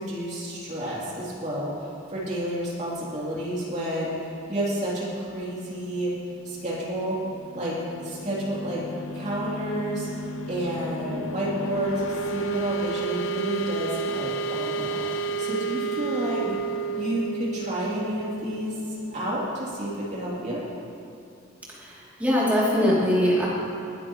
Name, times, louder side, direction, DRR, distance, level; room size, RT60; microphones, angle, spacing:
voice 1, 0.0-4.1 4.5-6.1 6.4-7.2 7.5-8.8 9.1-10.1 10.5-16.4 17.0-20.6, right 1 dB, 40° right, -6 dB, 3.2 m, -30 dB
sound 1, 7.4-20.0, right 3 dB, 85° left, 0.7 m, -32 dB
voice 2, 21.8-23.5, equal, 10° right, -7 dB, 2.9 m, -22 dB
20.5 x 10.0 x 3.1 m, 2.7 s
head